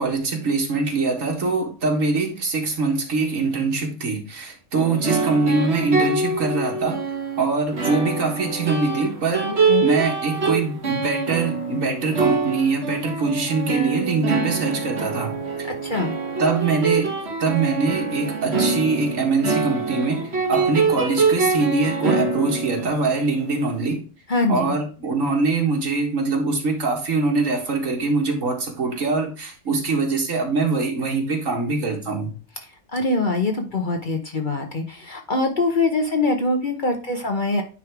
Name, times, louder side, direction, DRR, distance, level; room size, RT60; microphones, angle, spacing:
voice 1, 0.0-7.0 7.4-15.7 16.4-17.1 17.4-24.0 24.5-32.3, right 3 dB, 85° right, 1 dB, 2.0 m, -23 dB
sound 1, 4.7-23.7, right 4 dB, 55° right, 1.8 m, -25 dB
voice 2, 15.8-16.1 24.3-24.7 32.9-37.6, left 3 dB, 40° left, 4 dB, 1.0 m, -23 dB
9.4 x 3.4 x 4.7 m, 0.36 s
omnidirectional pair, 1.3 m